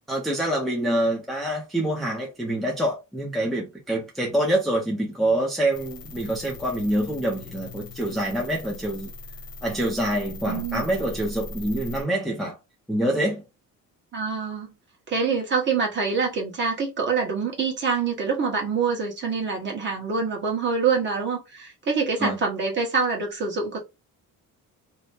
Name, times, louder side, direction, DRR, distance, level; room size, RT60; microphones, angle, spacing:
voice 1, 0.1-9.1 9.6-12.6 12.9-13.4 22.2-22.4, right 1 dB, ahead, 0.5 m, -26 dB
sound 1, 5.7-12.0, left 2 dB, 80° left, 1.1 m, -40 dB
voice 2, 10.5-10.9 14.1-14.7 15.1-23.8, right 5 dB, 35° right, 1.1 m, -25 dB
2.8 x 2.1 x 3.3 m
cardioid pair, 155°, 34 cm